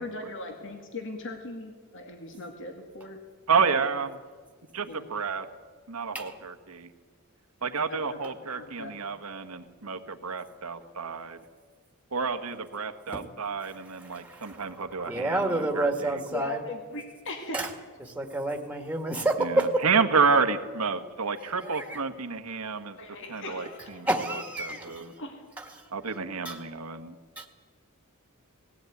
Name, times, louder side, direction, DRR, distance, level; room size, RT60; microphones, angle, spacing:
voice 1, 0.0-3.2 3.5-3.7 4.8-5.1 7.9-8.2 8.5-9.0 16.3-17.7 23.0-24.1 24.7-24.8 25.2-25.5, left 2 dB, 60° left, 4 dB, 2.1 m, -39 dB
voice 2, 3.5-4.2 4.7-5.5 5.9-6.9 7.6-11.4 12.1-16.2 19.4-23.0 23.3-25.1 25.9-27.2, right 5 dB, 85° right, 8 dB, 1.5 m, -30 dB
voice 3, 14.0-16.6 17.5-17.7 18.0-19.8 21.6-22.0 24.1-25.0 25.6-25.7 26.5-26.6 27.4-27.5, right 2 dB, 5° right, 4 dB, 1.9 m, -29 dB
19.0 x 16.5 x 9.3 m, 1.5 s
head